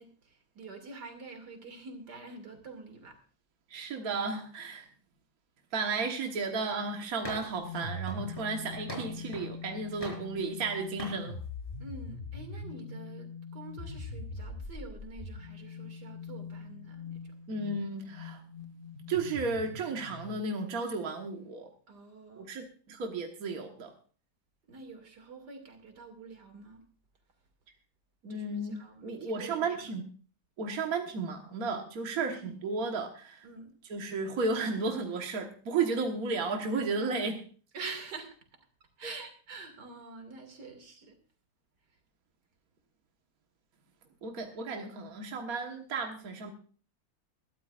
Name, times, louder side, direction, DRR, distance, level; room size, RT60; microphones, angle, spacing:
voice 1, 0.0-3.2 8.8-9.1 11.8-17.3 21.9-22.5 24.7-26.8 28.3-30.0 32.2-32.6 33.4-33.7 37.7-38.3 39.0-41.2, right 3 dB, 90° right, 6 dB, 3.0 m, -46 dB
voice 2, 3.7-4.9 5.7-11.4 17.5-18.4 19.1-21.7 22.4-23.9 28.2-28.8 29.0-30.1 30.6-33.5 33.9-37.4 39.0-39.1 44.2-46.5, right 4 dB, 60° right, 3 dB, 1.8 m, -33 dB
sound 1, 7.2-7.7 8.1-9.6 10.0-10.7 11.0-11.2, right 1 dB, 15° left, 5.0 m, -43 dB
sound 2, 7.6-20.5, left 3 dB, 35° left, 1.3 m, -43 dB
21.0 x 13.0 x 2.5 m, 0.40 s
omnidirectional pair, 1.8 m